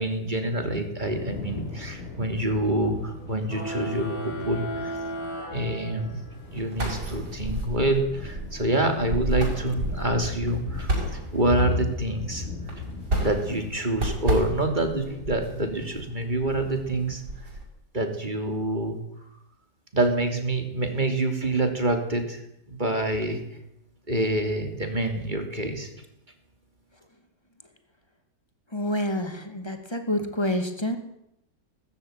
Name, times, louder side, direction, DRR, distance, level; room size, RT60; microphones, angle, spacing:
voice 1, 0.0-5.0 5.5-6.2 6.5-12.5 13.1-17.2 17.9-19.0 19.9-23.4 24.1-25.9, right 1 dB, 25° right, 5 dB, 3.2 m, -27 dB
Thunder / Rain, 1.0-17.2, left 3 dB, 30° left, 5.6 m, -39 dB
sound 1, 3.5-6.4, right 1 dB, 75° left, 6.1 m, -35 dB
sound 2, 6.3-17.6, right 1 dB, 60° right, 6.3 m, -32 dB
voice 2, 28.7-31.0, left 1 dB, 15° left, 7 dB, 2.6 m, -28 dB
19.0 x 15.0 x 9.5 m, 0.81 s
omnidirectional pair, 2.0 m